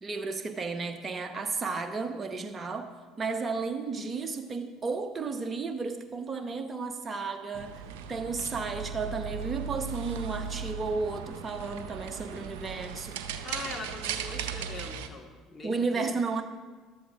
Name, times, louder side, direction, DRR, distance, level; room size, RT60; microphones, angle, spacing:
voice 1, 0.0-2.9 3.2-7.8 8.1-13.2 15.6-16.4, right 4 dB, 30° right, 7 dB, 1.0 m, -33 dB
sound 1, 7.5-15.1, right 7 dB, 65° right, 0.6 m, -37 dB
voice 2, 13.4-16.1, left 3 dB, 25° left, 2 dB, 1.6 m, -41 dB
14.5 x 11.5 x 2.5 m, 1.4 s
figure-of-eight pair, 60°, 0 cm